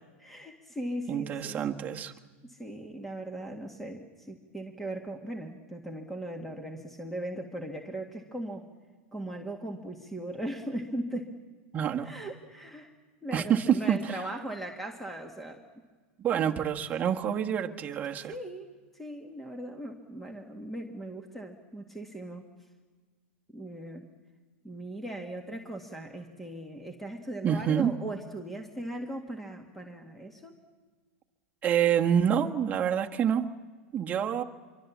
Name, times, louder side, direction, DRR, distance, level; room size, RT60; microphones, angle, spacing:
voice 1, 0.2-1.6 2.4-8.6 9.1-11.3 12.0-12.9 13.2-15.6 18.2-18.7 18.9-22.5 23.5-24.0 24.6-30.5, right 1 dB, 5° left, 3 dB, 1.8 m, -39 dB
voice 2, 1.1-2.1 11.7-12.1 13.3-14.2 16.2-18.3 27.4-27.9 31.6-33.5 33.9-34.4, right 8 dB, 20° right, 2 dB, 1.5 m, -27 dB
25.5 x 24.0 x 7.3 m, 1.5 s
hypercardioid pair, 130°, 7 cm